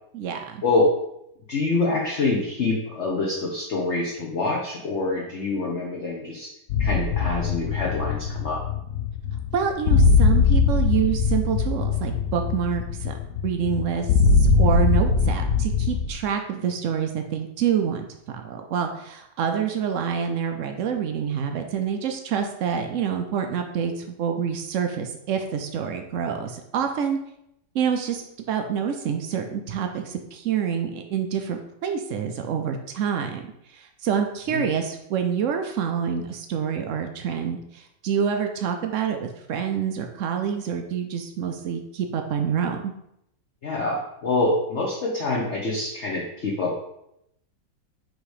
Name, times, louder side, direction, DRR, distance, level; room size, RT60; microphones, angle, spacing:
voice 1, 0.1-0.6 9.5-13.1 13.4-14.1 14.4-27.2 27.7-33.4 33.7-42.9, right 7 dB, 75° right, 5 dB, 0.7 m, -27 dB
voice 2, 1.5-6.5 6.8-8.6 34.5-34.6 43.6-46.8, left 3 dB, 50° left, -2 dB, 0.9 m, -25 dB
sound 1, 6.7-16.1, left 4 dB, 75° left, 1.3 m, -21 dB
6.2 x 3.2 x 4.9 m, 0.80 s
omnidirectional pair, 1.9 m